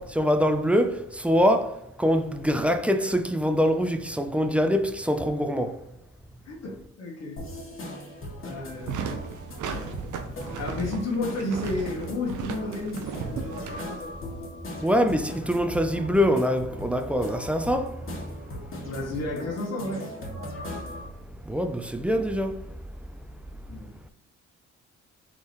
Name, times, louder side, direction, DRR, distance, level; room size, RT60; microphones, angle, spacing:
voice 1, 0.0-5.8 14.8-18.1 18.8-18.9 21.5-22.6, equal, 5° right, 0.3 m, -24 dB
voice 2, 6.5-7.4 8.4-9.0 10.6-14.1 18.8-20.1 23.7-23.9, left 2 dB, 60° left, 1.1 m, -32 dB
sound 1, 7.4-21.1, left 1 dB, 45° left, 1.5 m, -39 dB
sound 2, 8.7-14.4, right 6 dB, 80° right, 0.7 m, -36 dB
3.9 x 3.7 x 3.2 m
cardioid pair, 90°, 30 cm